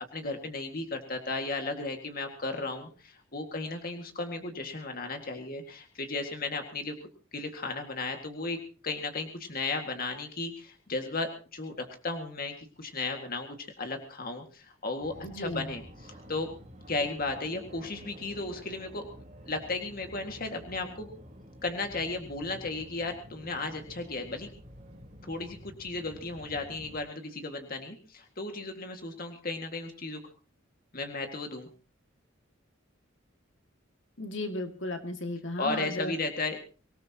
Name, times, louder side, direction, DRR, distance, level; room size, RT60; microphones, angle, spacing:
voice 1, 0.1-6.9 7.3-8.6 8.8-16.5 16.9-19.0 19.5-21.1 21.6-24.5 25.2-30.2 30.9-31.7 35.6-36.6, left 3 dB, 45° left, 5 dB, 2.0 m, -35 dB
Fixed-wing aircraft airplane, 15.0-27.0, equal, 35° right, 3.8 m, -50 dB
voice 2, 15.2-15.7 34.2-36.1, left 1 dB, 65° left, 6 dB, 2.2 m, -35 dB
25.0 x 18.0 x 2.9 m, 0.35 s
head